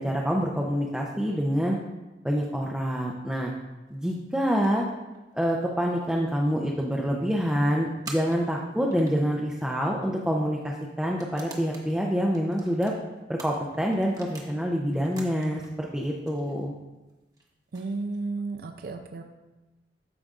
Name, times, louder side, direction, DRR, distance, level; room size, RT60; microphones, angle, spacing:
voice 1, 0.0-1.8 2.2-3.5 3.9-4.9 5.3-12.9 13.3-16.7, equal, 5° right, -2 dB, 0.5 m, -26 dB
sound 1, 3.9-5.5 5.9-6.0 6.2-6.3 7.0-7.2 8.1-9.4 10.1-10.2 11.0-11.9 12.3-14.5 14.9-15.7 16.0-18.5, right 2 dB, 20° right, 1.0 m, -46 dB
voice 2, 17.7-19.3, right 3 dB, 55° right, 6 dB, 0.5 m, -33 dB
13.0 x 5.0 x 2.4 m, 1.1 s
head